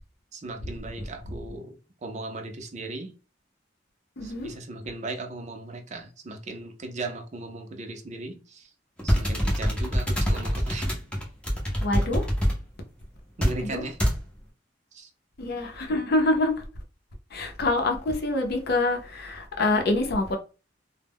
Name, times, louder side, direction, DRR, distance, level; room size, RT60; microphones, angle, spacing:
voice 1, 0.3-1.7 2.0-3.1 4.2-8.7 9.0-10.9 13.4-14.0 14.9-15.1, right 2 dB, 40° right, 0.5 m, -37 dB
voice 2, 4.2-4.5 11.8-12.3 13.6-13.8 15.4-16.7 17.3-20.4, left 2 dB, 60° left, 0.6 m, -26 dB
sound 1, 9.0-12.6 13.4-13.6 14.0-14.2, equal, 5° left, 0.6 m, -25 dB
2.1 x 2.1 x 3.4 m
head